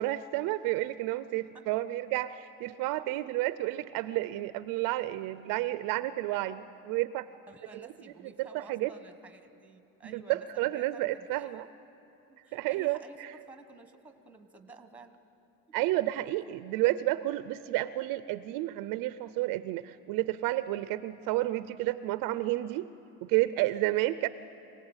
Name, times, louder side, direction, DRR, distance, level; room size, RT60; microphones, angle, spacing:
voice 1, 0.0-7.3 7.7-7.9 8.4-8.9 10.0-11.6 12.5-13.3 15.7-22.9 23.2-24.3, right 16 dB, 55° right, 13 dB, 0.5 m, -31 dB
voice 2, 7.5-11.6 12.3-15.3 15.7-15.8, right 3 dB, 5° right, 7 dB, 1.1 m, -52 dB
26.0 x 18.5 x 8.0 m, 2.9 s
cardioid pair, 160°, 41 cm